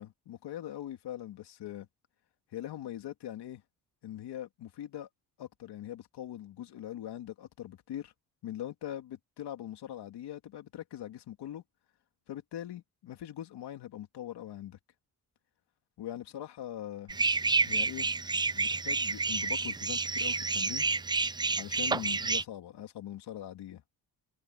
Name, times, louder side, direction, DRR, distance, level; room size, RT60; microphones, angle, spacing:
voice 1, 0.0-1.9 2.5-3.6 4.0-5.1 5.4-8.1 8.4-11.6 12.3-14.8 16.0-17.2 17.6-18.1 18.5-20.9 21.6-23.8, left 12 dB, 85° left, 2.9 m, -42 dB
sound 1, 17.1-22.4, right 4 dB, 10° right, 0.3 m, -29 dB
cardioid pair, 145°, 39 cm